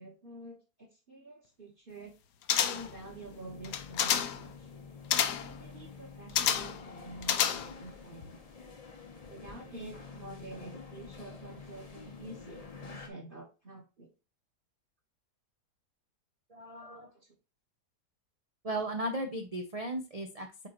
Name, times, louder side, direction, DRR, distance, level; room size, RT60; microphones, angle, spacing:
voice 1, 0.0-2.1 2.6-4.9 5.4-8.4 9.3-14.1 17.1-17.3, right 2 dB, 35° right, 1 dB, 1.4 m, -48 dB
sound 1, 2.5-3.0 3.6-4.4 5.1-5.5 6.4-6.8 7.2-7.9 8.2-8.3, left 9 dB, 80° left, 1.3 m, -29 dB
sound 2, 2.8-13.1, left 5 dB, 35° left, 0.6 m, -49 dB
voice 2, 16.5-17.1 18.6-20.7, right 1 dB, 50° right, 4 dB, 0.4 m, -36 dB
8.4 x 3.8 x 3.0 m, 0.31 s
omnidirectional pair, 1.8 m